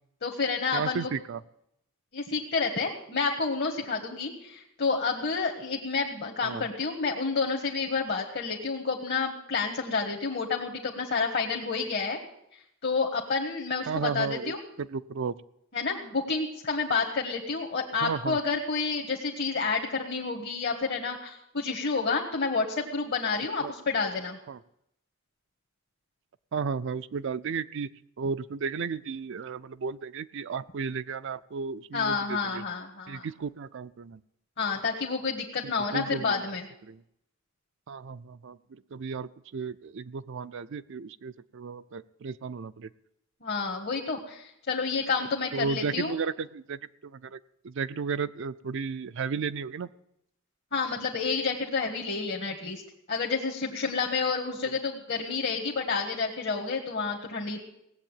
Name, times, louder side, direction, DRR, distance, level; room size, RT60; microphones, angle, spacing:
voice 1, 0.2-1.1 2.1-12.2 12.8-14.6 15.7-24.4 31.9-33.3 34.6-36.7 43.4-46.2 50.7-52.8 53.1-57.6, left 4 dB, 50° left, 0 dB, 1.5 m, -29 dB
voice 2, 0.7-1.4 6.4-6.6 13.9-15.4 18.0-18.4 23.6-23.7 24.5-24.6 26.5-27.9 28.2-32.6 33.1-34.2 35.9-36.4 36.8-37.0 37.9-42.9 45.5-47.4 47.6-49.9, right 5 dB, 65° right, 13 dB, 0.5 m, -34 dB
17.5 x 7.8 x 9.0 m, 0.79 s
head